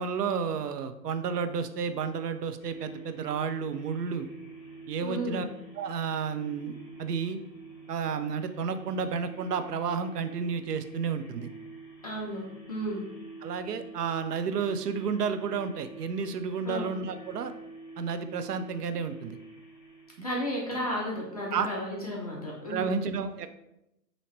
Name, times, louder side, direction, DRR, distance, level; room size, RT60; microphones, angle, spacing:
voice 1, 0.0-4.3 4.9-5.5 5.8-7.4 7.9-11.5 13.4-17.5 18.0-19.4 21.5-21.7 22.7-23.5, right 6 dB, 70° right, 9 dB, 0.6 m, -31 dB
sound 1, 2.6-20.9, right 3 dB, ahead, 1.5 m, -48 dB
voice 2, 5.0-5.4 12.0-13.0 16.6-16.9 20.2-23.0, equal, 25° left, -3 dB, 0.4 m, -33 dB
5.8 x 2.8 x 3.1 m, 0.85 s
hypercardioid pair, 135°, 50 cm